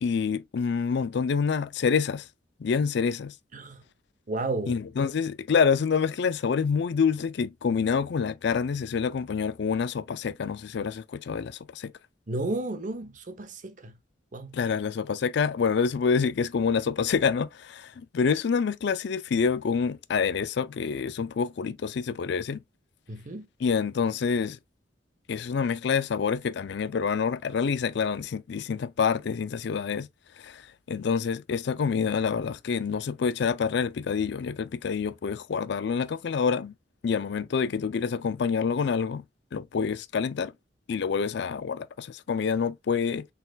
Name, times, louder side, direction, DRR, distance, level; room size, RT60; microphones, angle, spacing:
voice 1, 0.0-2.3 2.6-3.3 4.7-11.9 14.5-22.6 23.6-24.6 25.3-30.1 30.4-36.7 37.0-39.2 39.5-40.5 40.9-43.3, left 6 dB, 60° left, 0.4 m, -27 dB
voice 2, 4.3-4.8 12.3-13.9 14.3-14.5 23.1-23.5, right 2 dB, 45° right, 0.8 m, -32 dB
4.0 x 3.9 x 2.3 m
head